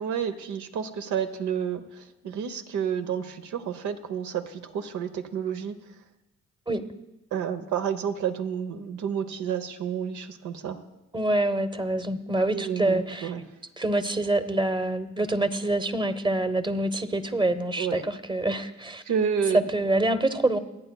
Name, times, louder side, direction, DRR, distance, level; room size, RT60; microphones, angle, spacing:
voice 1, 0.0-5.8 7.3-10.8 12.5-13.4 17.8-18.0 19.1-19.7, right 7 dB, 85° right, 8 dB, 0.9 m, -30 dB
voice 2, 11.1-13.3 13.8-19.0 19.5-20.6, right 2 dB, 15° right, 10 dB, 0.8 m, -26 dB
27.0 x 9.0 x 2.3 m, 0.96 s
cardioid pair, 80°, 29 cm